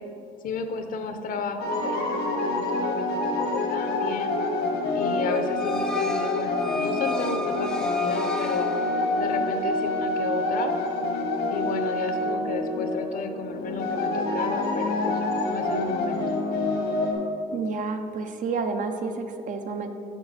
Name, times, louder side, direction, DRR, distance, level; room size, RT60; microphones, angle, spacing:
voice 1, 0.4-4.3 4.9-8.7 9.2-10.7 11.5-16.3, left 4 dB, 55° left, 7 dB, 0.7 m, -33 dB
sound 1, 1.6-17.1, left 2 dB, 85° left, 1.4 m, -27 dB
sound 2, 5.2-9.4, right 1 dB, 5° left, 0.4 m, -36 dB
voice 2, 17.5-19.9, right 4 dB, 50° right, 7 dB, 0.6 m, -30 dB
7.2 x 5.7 x 4.1 m, 2.7 s
cardioid pair, 110°, 17 cm